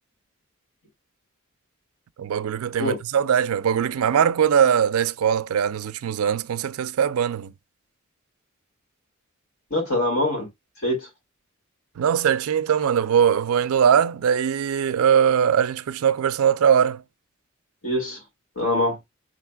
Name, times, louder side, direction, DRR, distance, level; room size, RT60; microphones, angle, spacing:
voice 1, 2.2-7.5 12.0-17.0, right 8 dB, 85° right, 0.4 m, -21 dB
voice 2, 9.7-10.5 10.8-11.1 17.8-18.2 18.6-19.0, left 1 dB, 80° left, 2.4 m, -23 dB
5.0 x 3.4 x 2.2 m
head